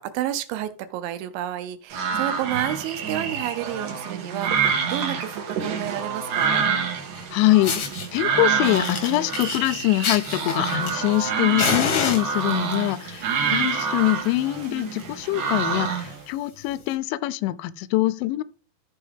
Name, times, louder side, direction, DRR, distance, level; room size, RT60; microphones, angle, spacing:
voice 1, 0.0-6.6, right 12 dB, 85° right, 3.1 m, -30 dB
sound 1, 1.9-16.2, right 6 dB, 60° right, 2.1 m, -27 dB
Fire, 7.1-7.2 7.6-8.1 8.6-11.3 11.6-12.7 13.6-13.8 14.1-14.2 14.6-14.7 15.0-15.2 15.8-15.9 16.8-16.9, left 5 dB, 70° left, 1.4 m, -28 dB
voice 2, 7.3-18.4, left 16 dB, 85° left, 2.9 m, -24 dB
14.0 x 4.7 x 3.5 m
omnidirectional pair, 5.3 m